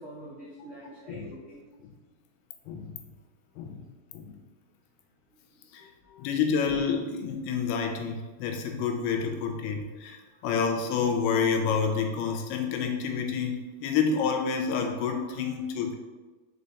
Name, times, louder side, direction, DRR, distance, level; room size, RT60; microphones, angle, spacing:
voice 1, 0.0-1.6 5.5-6.3 10.3-10.5 15.3-15.4, equal, 45° right, -11 dB, 0.9 m, -46 dB
voice 2, 6.2-16.0, left 6 dB, 90° left, 4 dB, 2.7 m, -28 dB
5.6 x 4.9 x 4.1 m, 1.3 s
omnidirectional pair, 4.4 m